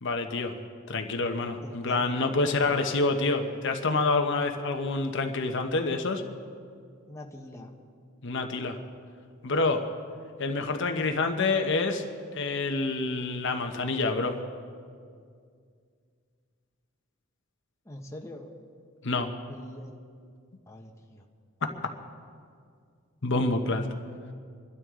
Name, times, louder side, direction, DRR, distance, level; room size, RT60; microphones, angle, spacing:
voice 1, 0.0-0.5 0.9-6.2 8.2-8.8 9.4-9.8 10.4-12.0 12.3-14.4 19.0-19.3 23.2-23.9, left 3 dB, 60° left, 5 dB, 1.0 m, -27 dB
voice 2, 1.6-2.1 7.1-7.7 17.8-18.5 19.5-20.0 20.7-21.2, left 1 dB, 15° left, 1 dB, 1.1 m, -44 dB
25.5 x 12.5 x 3.8 m, 2.2 s
head